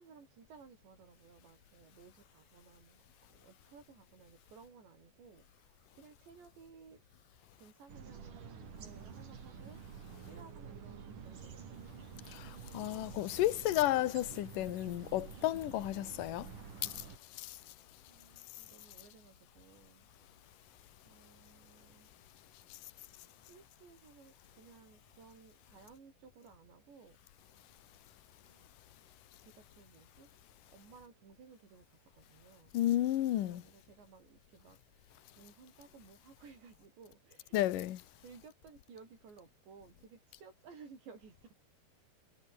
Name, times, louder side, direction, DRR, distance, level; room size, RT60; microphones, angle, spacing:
voice 1, 0.0-3.0 3.3-7.0 7.6-12.1 18.1-20.1 21.1-22.1 23.1-27.2 27.5-27.7 28.4-28.8 29.4-30.3 30.7-32.7 33.4-34.8 35.3-37.9 38.2-41.5, right 5 dB, 90° right, 8.7 m, -58 dB
sound 1, 7.9-17.2, right 6 dB, 50° right, 4.8 m, -49 dB
voice 2, 12.3-16.5 16.8-17.0 17.4-17.6 32.7-33.6 37.5-38.0, left 14 dB, 65° left, 2.6 m, -32 dB
omnidirectional pair, 4.9 m